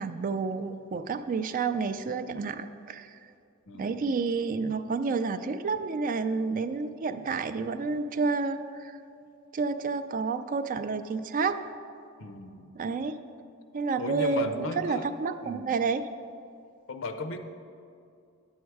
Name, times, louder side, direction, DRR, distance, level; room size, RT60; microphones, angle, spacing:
voice 1, 0.0-3.2 3.7-9.0 9.5-11.6 12.7-13.2 13.7-16.0, right 4 dB, 40° right, 10 dB, 0.4 m, -30 dB
voice 2, 3.7-4.0 12.2-12.7 14.0-15.1 15.4-15.7 16.9-17.4, left 2 dB, 70° left, 8 dB, 0.7 m, -35 dB
9.5 x 7.2 x 4.7 m, 2.5 s
head